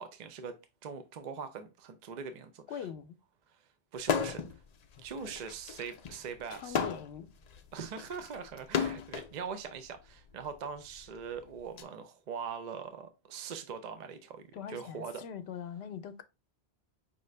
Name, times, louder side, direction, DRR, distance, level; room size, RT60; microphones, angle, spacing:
voice 1, 0.0-2.9 3.5-3.6 3.9-4.4 5.0-6.8 7.7-15.2, right 6 dB, 55° right, 0.5 m, -42 dB
voice 2, 2.7-3.1 6.5-7.3 14.5-16.2, left 8 dB, 75° left, 0.8 m, -42 dB
sound 1, 4.0-4.6 4.9-9.3 10.2-11.8, left 6 dB, 55° left, 0.5 m, -34 dB
5.4 x 2.5 x 3.1 m
omnidirectional pair, 1.1 m